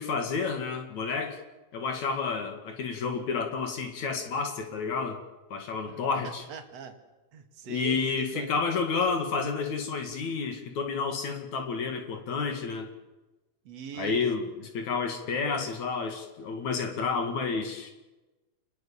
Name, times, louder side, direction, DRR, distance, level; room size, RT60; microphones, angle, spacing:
voice 1, 0.0-1.4 1.7-5.2 5.5-6.4 7.7-12.9 14.0-14.4 14.7-17.9, left 5 dB, 65° left, 4 dB, 3.5 m, -30 dB
voice 2, 5.9-7.0 7.3-8.7 13.6-14.3 15.0-15.1 15.4-15.8, right 7 dB, 55° right, 6 dB, 3.2 m, -41 dB
29.0 x 20.5 x 7.3 m, 1.1 s
omnidirectional pair, 3.6 m